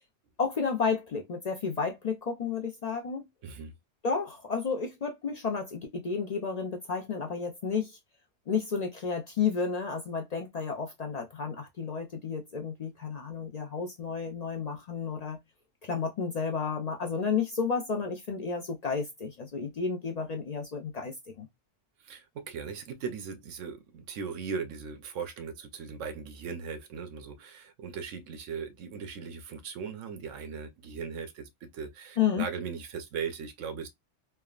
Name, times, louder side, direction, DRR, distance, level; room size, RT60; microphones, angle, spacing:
voice 1, 0.4-3.3 4.0-8.0 8.5-15.4 15.8-21.5 32.2-32.4, left 5 dB, 65° left, 0.4 m, -32 dB
voice 2, 3.4-3.7 22.0-33.9, right 6 dB, 75° right, 1.0 m, -38 dB
3.4 x 2.1 x 2.3 m
omnidirectional pair, 1.3 m